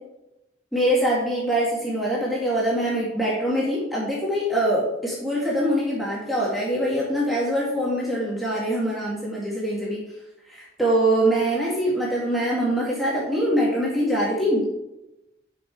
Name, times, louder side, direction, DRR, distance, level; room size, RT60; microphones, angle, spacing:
voice 1, 0.7-10.0 10.5-14.8, right 1 dB, ahead, -6 dB, 1.9 m, -23 dB
10.0 x 6.0 x 4.7 m, 0.91 s
head